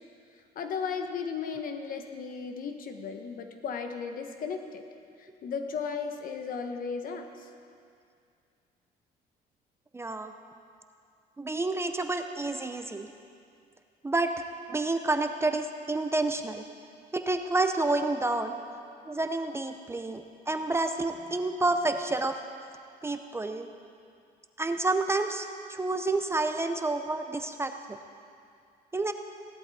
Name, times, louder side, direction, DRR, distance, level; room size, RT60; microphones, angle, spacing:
voice 1, 0.5-4.9 5.2-7.5 18.3-18.4 26.3-26.4, left 5 dB, 55° left, 5 dB, 1.2 m, -35 dB
voice 2, 9.9-10.3 11.4-13.1 14.0-14.3 14.7-16.6 17.1-18.6 19.1-22.4 23.0-23.7 24.6-28.0 28.9-29.1, right 2 dB, 15° right, 7 dB, 0.6 m, -29 dB
16.5 x 12.0 x 4.2 m, 2.4 s
cardioid pair, 110°, 17 cm